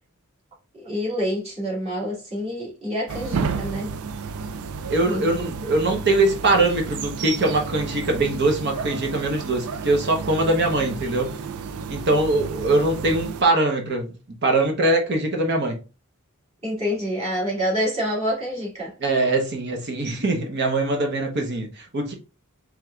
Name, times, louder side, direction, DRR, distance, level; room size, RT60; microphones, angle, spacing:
voice 1, 0.7-3.9 5.1-5.5 16.6-18.9, equal, 30° right, 2.2 m, -27 dB
sound 1, 3.1-13.4, right 5 dB, 85° right, 0.4 m, -32 dB
voice 2, 4.9-11.3 11.9-14.2 14.4-15.8 19.0-22.1, right 2 dB, 50° right, 0.8 m, -22 dB
4.7 x 3.5 x 2.3 m
head